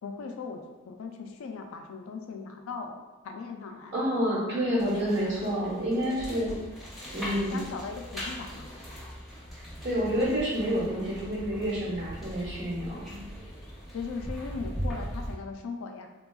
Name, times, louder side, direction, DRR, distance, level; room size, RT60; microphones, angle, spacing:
voice 1, 0.0-3.0 3.2-4.0 4.6-5.1 5.4-5.6 6.0-6.7 7.5-8.7 13.9-16.1, left 4 dB, 80° left, 4 dB, 0.3 m, -39 dB
voice 2, 3.9-6.5 7.1-7.6 9.8-13.2, equal, 55° right, -5 dB, 1.0 m, -28 dB
sound 1, 4.8-15.3, equal, ahead, 0.5 m, -40 dB
3.3 x 2.3 x 2.2 m, 1.2 s
head